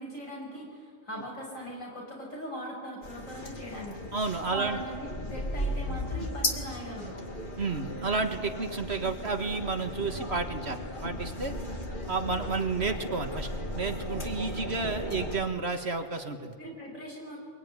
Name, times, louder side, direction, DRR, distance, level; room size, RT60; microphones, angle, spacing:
voice 1, 0.0-4.1 4.5-7.2 14.7-15.4 16.6-17.4, equal, 80° left, -1 dB, 7.4 m, -40 dB
sound 1, 3.0-15.4, left 1 dB, 40° left, 2.3 m, -36 dB
voice 2, 4.1-4.8 7.6-11.5 12.1-16.6, right 4 dB, 55° right, 6 dB, 2.0 m, -31 dB
24.0 x 22.5 x 9.9 m, 2.1 s
omnidirectional pair, 1.4 m